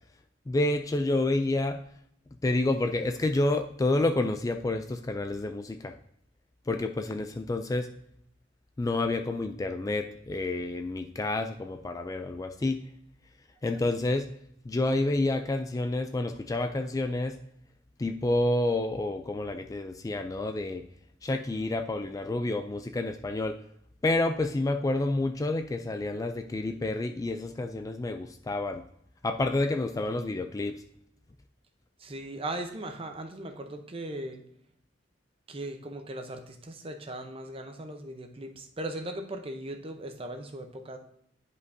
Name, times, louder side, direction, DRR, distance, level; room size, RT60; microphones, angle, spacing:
voice 1, 0.5-1.8 2.4-5.9 6.7-7.9 8.8-12.8 13.6-14.3 14.7-17.4 18.0-20.8 21.2-23.6 24.0-28.8 29.2-30.7, left 2 dB, 20° left, 7 dB, 0.3 m, -29 dB
voice 2, 32.0-34.4 35.5-41.0, right 1 dB, 30° right, 5 dB, 0.8 m, -38 dB
10.5 x 5.2 x 2.7 m, 0.73 s
head